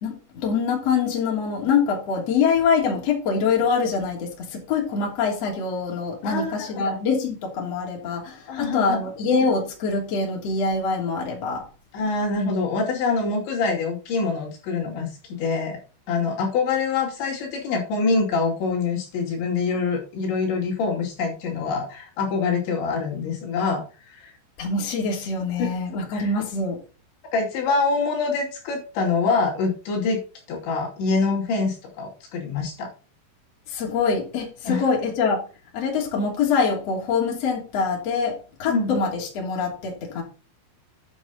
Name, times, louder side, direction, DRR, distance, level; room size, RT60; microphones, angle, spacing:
voice 1, 0.0-11.6 24.6-26.8 33.7-35.4 35.7-40.2, left 5 dB, 35° left, -2 dB, 3.3 m, -24 dB
voice 2, 6.2-7.0 8.5-9.0 11.9-15.8 16.1-24.3 25.9-26.3 27.3-30.2 30.5-32.9 34.6-34.8 38.7-38.9, left 4 dB, 65° left, -2 dB, 4.8 m, -25 dB
10.0 x 7.5 x 4.2 m, 0.35 s
omnidirectional pair, 5.9 m